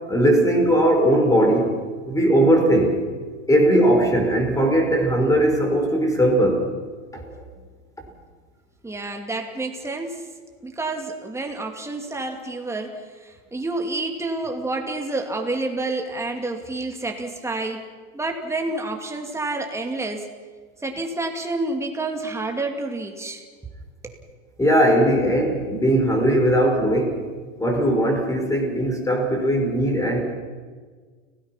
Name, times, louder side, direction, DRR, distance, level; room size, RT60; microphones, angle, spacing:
voice 1, 0.1-1.7 2.1-3.0 3.5-6.7 7.1-7.3 24.6-27.2 27.6-30.2, right 1 dB, 10° left, 3 dB, 4.7 m, -19 dB
voice 2, 8.8-10.3 10.6-17.8 18.1-20.3 20.8-23.4 24.0-24.1, right 2 dB, 5° right, 3 dB, 2.7 m, -29 dB
30.0 x 17.5 x 5.9 m, 1.5 s
supercardioid pair, 135°, 37 cm